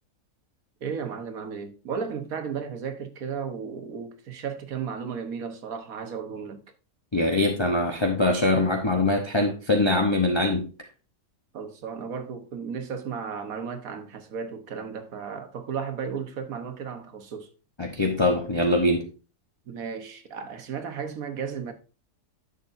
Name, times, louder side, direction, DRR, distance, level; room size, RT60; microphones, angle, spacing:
voice 1, 0.8-6.6 11.5-17.5 19.7-21.7, right 6 dB, 60° right, 1.5 m, -34 dB
voice 2, 7.1-10.7 17.8-19.1, left 2 dB, 25° left, 0.6 m, -23 dB
11.0 x 6.9 x 2.6 m
omnidirectional pair, 1.7 m